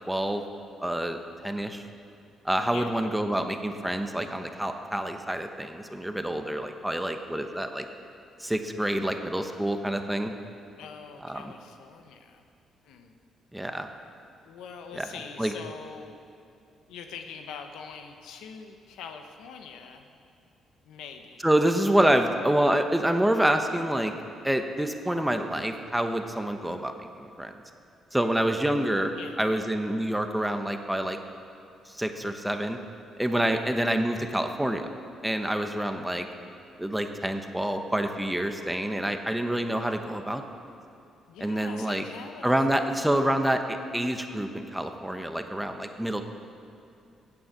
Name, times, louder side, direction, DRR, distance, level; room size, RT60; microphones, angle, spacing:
voice 1, 0.1-0.4 0.8-1.8 2.4-7.8 8.4-10.3 11.2-11.5 13.5-13.9 15.0-15.1 15.4-15.5 21.4-24.1 24.4-26.9 27.2-27.5 28.1-29.1 29.4-31.2 31.9-32.8 33.2-34.9 35.2-36.3 36.8-40.4 41.4-42.0 42.4-46.2, right 1 dB, 5° right, 6 dB, 1.1 m, -27 dB
voice 2, 2.7-3.1 10.8-12.4 12.8-13.1 14.4-16.2 16.9-20.2 20.8-21.5 29.1-29.7 33.5-33.8 41.3-42.5 42.7-43.0, left 6 dB, 90° left, 5 dB, 1.1 m, -44 dB
16.0 x 8.8 x 6.8 m, 2.6 s
cardioid pair, 90°, 0 cm